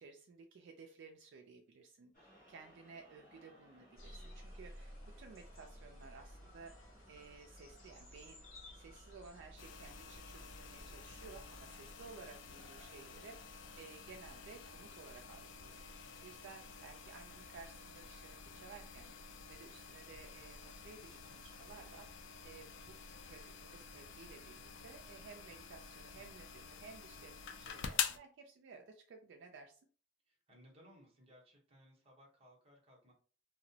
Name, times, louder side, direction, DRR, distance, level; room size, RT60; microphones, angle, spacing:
voice 1, 0.0-6.7 7.1-8.4 8.7-15.8 16.2-19.1 19.5-23.0 23.2-29.8, right 4 dB, 60° right, 3 dB, 0.3 m, -56 dB
sound 1, 2.1-14.2, equal, 40° left, 1.3 m, -65 dB
sound 2, 4.0-11.7, equal, 85° left, 1.0 m, -55 dB
sound 3, 9.6-28.2, left 7 dB, 60° left, 0.3 m, -48 dB
voice 2, 26.1-26.6 30.2-33.1, equal, 30° right, -1 dB, 0.8 m, -63 dB
2.8 x 2.0 x 2.6 m, 0.41 s
head